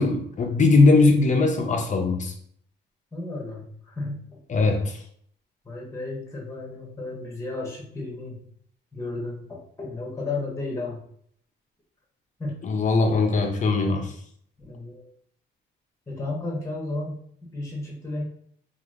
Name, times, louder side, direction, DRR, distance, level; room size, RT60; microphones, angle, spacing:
voice 1, 0.0-2.3 4.5-5.0 12.6-14.1, left 3 dB, 40° left, 4 dB, 0.6 m, -20 dB
voice 2, 3.1-4.4 5.6-8.4 8.9-11.0 12.4-12.8 14.6-15.1 16.1-18.2, left 2 dB, 15° left, -2 dB, 1.1 m, -33 dB
3.0 x 2.6 x 2.5 m, 0.63 s
cardioid pair, 90°, 20 cm